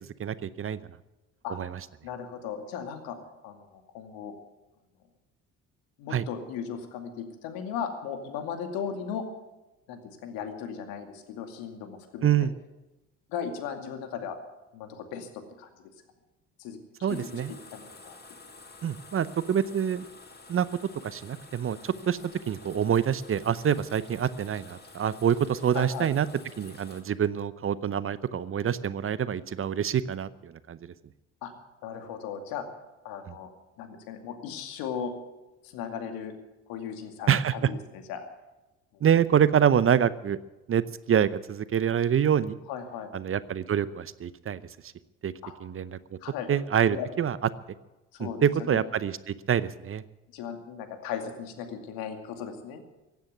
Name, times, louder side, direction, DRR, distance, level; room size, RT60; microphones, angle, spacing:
voice 1, 0.2-0.8 1.6-1.8 6.1-6.2 12.2-12.5 17.0-17.5 18.8-20.1 20.5-20.7 21.0-22.2 22.5-26.3 26.6-30.9 37.3-37.5 39.0-40.4 40.7-42.6 43.1-44.9 45.2-45.3 45.6-46.2 46.5-47.4 48.2-50.0, right 9 dB, 35° right, 16 dB, 0.8 m, -26 dB
voice 2, 2.0-3.2 3.4-4.3 6.0-9.3 9.9-12.5 13.3-14.4 14.7-15.7 16.6-17.4 17.7-18.2 25.7-26.1 31.4-31.5 31.8-32.6 33.0-33.5 33.8-35.1 35.6-36.3 36.7-38.3 38.9-39.1 42.7-43.1 45.4-45.5 46.2-46.5 46.9-47.1 48.1-48.8 50.3-52.8, left 7 dB, 70° left, 6 dB, 2.4 m, -37 dB
sound 1, 17.1-27.0, left 3 dB, 25° left, 2.4 m, -50 dB
16.0 x 9.4 x 9.3 m, 1.0 s
hypercardioid pair, 60°, 37 cm